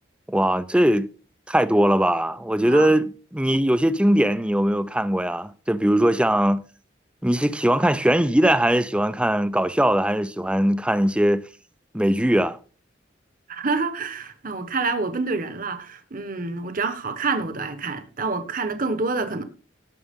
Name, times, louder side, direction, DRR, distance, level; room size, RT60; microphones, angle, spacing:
voice 1, 0.3-1.1 1.5-6.6 7.2-11.4 11.9-12.6, right 1 dB, 5° right, 0.5 m, -20 dB
voice 2, 13.5-19.4, right 3 dB, 45° right, 1.2 m, -27 dB
18.0 x 6.3 x 3.7 m
head